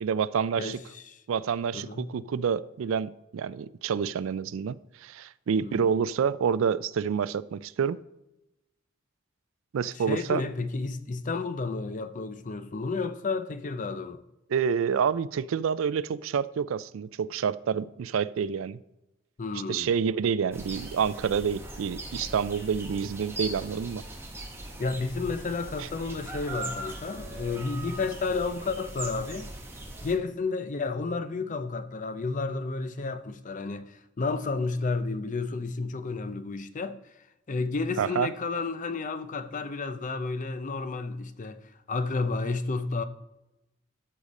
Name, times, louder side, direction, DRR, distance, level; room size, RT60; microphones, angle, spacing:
voice 1, 0.0-0.8 1.3-8.0 9.7-10.4 14.5-18.8 19.7-24.0 38.0-38.3, right 7 dB, 80° right, 0.4 m, -28 dB
voice 2, 0.6-1.2 1.7-2.1 5.6-5.9 10.0-14.2 19.4-19.9 24.8-29.5 30.0-37.1 37.5-41.6 41.9-43.0, left 3 dB, 40° left, 0.6 m, -31 dB
sound 1, 20.5-30.1, right 2 dB, 15° right, 1.4 m, -40 dB
13.0 x 5.0 x 4.1 m
head